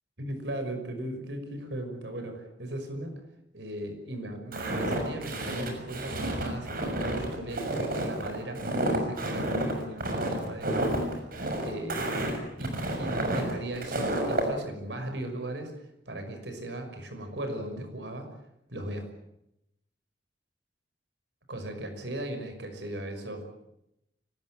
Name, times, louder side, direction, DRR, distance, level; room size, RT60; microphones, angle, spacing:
voice 1, 0.2-3.2 3.5-11.2 11.6-12.2 12.6-15.7 16.1-18.3 18.7-19.1 21.5-23.5, right 1 dB, 75° right, 6 dB, 5.9 m, -37 dB
Walk footsteps, 4.5-14.5, right 1 dB, 55° right, 6.5 m, -30 dB
25.0 x 19.5 x 9.2 m, 0.83 s
head